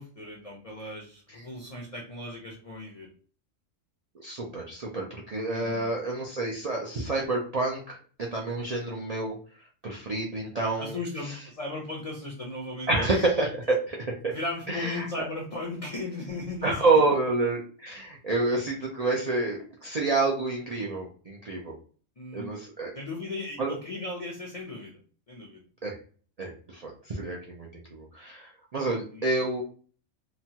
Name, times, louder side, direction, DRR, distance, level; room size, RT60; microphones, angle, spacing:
voice 1, 0.0-3.1 5.4-5.9 10.8-13.1 14.3-17.0 22.2-22.5 22.9-25.0 25.3-25.6 29.1-29.3, left 2 dB, 45° left, -1 dB, 0.5 m, -37 dB
voice 2, 4.2-9.4 9.8-10.9 11.2-11.4 12.9-14.0 14.2-14.3 14.7-15.1 16.6-21.7 22.3-22.9 23.6-23.7 25.8-26.0 26.4-29.6, right 3 dB, 60° right, -2 dB, 0.4 m, -28 dB
2.9 x 2.2 x 2.8 m, 0.42 s
omnidirectional pair, 1.3 m